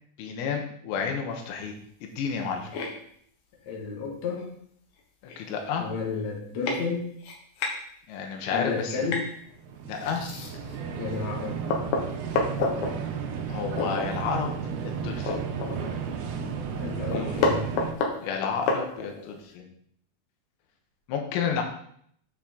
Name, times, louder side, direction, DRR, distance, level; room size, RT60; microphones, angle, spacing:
voice 1, 0.2-1.7 2.0-2.7 5.4-5.9 8.1-9.1 9.9-10.3 13.5-14.6 14.8-15.4 17.1-17.5 18.2-19.7 21.1-21.6, left 6 dB, 90° left, 3 dB, 3.9 m, -31 dB
sound 1, 2.7-2.9 4.4-4.5 5.0-5.1 5.3-5.6 6.2-6.3 6.6-6.8 7.2-7.8 9.1-9.3 10.0-10.8 11.2-11.3 11.7-12.9 13.7-14.1 14.5-14.6 14.9-16.1 16.4-16.5 16.8-19.3, left 4 dB, 70° left, 2.5 m, -29 dB
voice 2, 3.6-4.6 5.8-7.1 8.5-9.2 11.0-11.6 16.7-17.7, left 4 dB, 55° left, -2 dB, 2.1 m, -32 dB
sound 2, 9.3-17.9, right 6 dB, 75° right, 2.9 m, -33 dB
8.8 x 7.3 x 3.9 m, 0.65 s
omnidirectional pair, 6.0 m